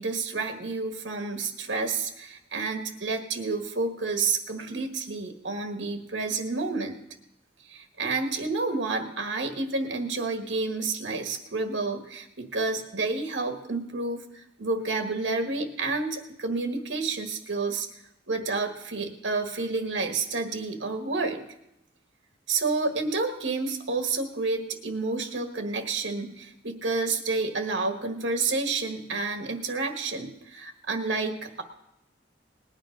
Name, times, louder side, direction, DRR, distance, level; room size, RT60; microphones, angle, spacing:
voice 1, 0.0-7.0 7.7-17.9 18.3-21.4 22.5-31.6, right 3 dB, 85° right, 5 dB, 1.5 m, -30 dB
19.5 x 9.1 x 5.2 m, 0.83 s
head